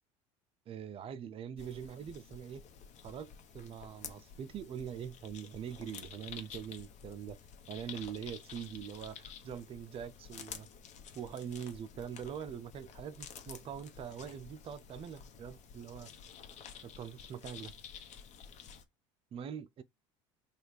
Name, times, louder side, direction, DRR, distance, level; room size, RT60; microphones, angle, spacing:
voice 1, 0.7-2.6 3.0-7.4 7.7-10.7 11.1-16.1 16.8-17.7 19.3-19.8, right 8 dB, 35° right, 0.5 m, -43 dB
sound 1, 1.6-18.8, left 7 dB, 50° left, 0.9 m, -51 dB
3.3 x 2.4 x 4.4 m
hypercardioid pair, 85°, 16 cm